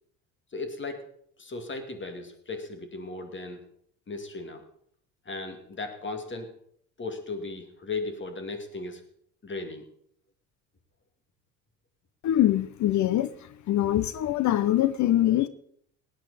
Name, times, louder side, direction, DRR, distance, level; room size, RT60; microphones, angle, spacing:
voice 1, 0.5-1.1 1.4-3.6 4.1-4.6 5.3-6.5 7.0-9.0 9.4-9.9, left 3 dB, 30° left, 7 dB, 2.5 m, -36 dB
voice 2, 12.2-15.5, left 13 dB, 45° left, 15 dB, 0.7 m, -24 dB
18.0 x 9.4 x 4.2 m, 0.66 s
hypercardioid pair, 65°, 39 cm